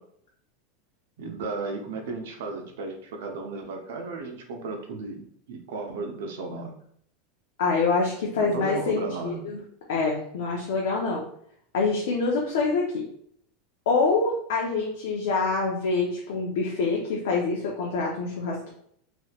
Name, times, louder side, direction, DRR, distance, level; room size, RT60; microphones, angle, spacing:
voice 1, 1.2-6.7 8.3-9.5, right 3 dB, 85° right, 3 dB, 0.7 m, -35 dB
voice 2, 7.6-9.6 9.9-11.2 11.7-13.1 13.9-18.7, left 4 dB, 75° left, -3 dB, 0.7 m, -26 dB
3.3 x 3.1 x 2.4 m, 0.66 s
supercardioid pair, 165°, 0 cm